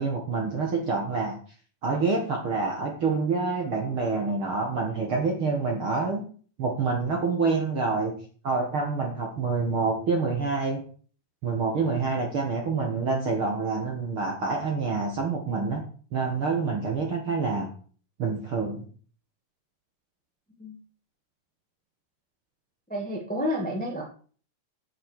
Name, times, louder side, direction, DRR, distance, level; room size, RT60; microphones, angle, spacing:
voice 1, 0.0-1.3 1.8-6.2 6.6-8.1 8.4-10.8 11.4-15.8 16.1-17.7 18.2-18.8, right 4 dB, 50° right, 1 dB, 1.7 m, -27 dB
voice 2, 22.9-24.0, equal, 5° left, 0 dB, 1.0 m, -30 dB
9.7 x 5.8 x 6.4 m, 0.44 s
omnidirectional pair, 4.2 m